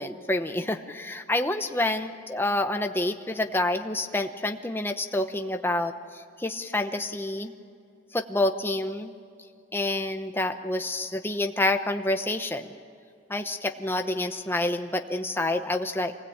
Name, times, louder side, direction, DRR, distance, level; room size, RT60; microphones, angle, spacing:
voice 1, 0.0-7.5 8.1-9.1 9.7-12.7 13.3-16.1, left 1 dB, 10° left, 6 dB, 0.9 m, -28 dB
25.0 x 20.0 x 8.7 m, 2.4 s
head